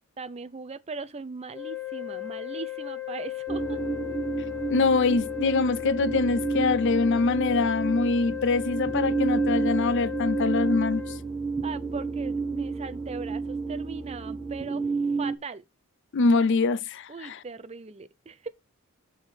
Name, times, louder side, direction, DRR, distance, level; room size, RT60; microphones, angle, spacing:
voice 1, 0.2-3.8 11.6-14.9 15.2-15.6 17.1-18.5, right 4 dB, 30° right, 0.5 m, -39 dB
sound 1, 1.5-11.2, left 15 dB, 10° left, 0.9 m, -36 dB
sound 2, 3.5-15.4, right 4 dB, 10° right, 1.3 m, -30 dB
voice 2, 4.7-11.0 16.1-17.4, left 4 dB, 55° left, 0.5 m, -24 dB
6.4 x 5.0 x 5.9 m
head